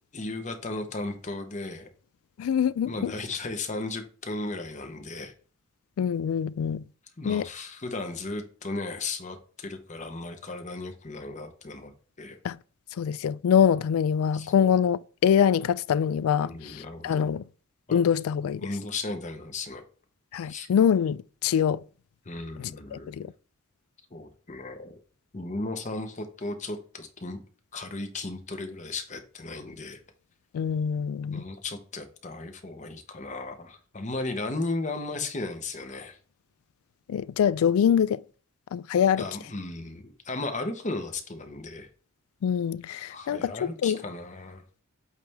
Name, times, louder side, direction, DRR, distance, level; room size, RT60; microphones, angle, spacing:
voice 1, 0.1-1.9 2.9-5.3 7.2-11.9 12.2-12.4 14.3-14.7 15.6-15.7 16.4-17.3 17.9-18.0 18.6-19.8 20.4-20.7 22.3-23.3 24.1-25.0 25.3-27.4 27.7-30.0 31.3-36.2 39.2-41.9 43.1-44.6, left 2 dB, 35° left, 0.9 m, -35 dB
voice 2, 2.4-3.1 6.0-6.8 7.2-7.5 12.4-12.6 13.0-17.4 17.9-18.6 20.3-21.8 22.6-23.3 30.5-31.4 37.1-38.2 38.7-39.3 42.4-44.0, left 8 dB, 85° left, 0.3 m, -24 dB
8.2 x 3.3 x 3.5 m
head